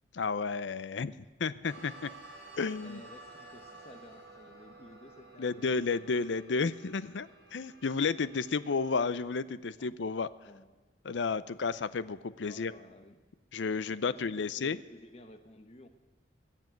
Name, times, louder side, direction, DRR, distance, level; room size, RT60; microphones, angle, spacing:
voice 1, 0.1-1.1 1.4-2.1 2.6-3.0 5.4-10.3 11.0-12.7 13.5-14.8, left 4 dB, 85° left, 16 dB, 0.6 m, -32 dB
sound 1, 1.6-9.1, right 2 dB, 60° right, 4.1 m, -53 dB
voice 2, 2.8-6.1 9.8-9.9 10.4-10.9 12.4-13.2 13.8-15.9, left 1 dB, 35° left, 8 dB, 1.1 m, -53 dB
21.0 x 7.5 x 9.2 m, 1.3 s
head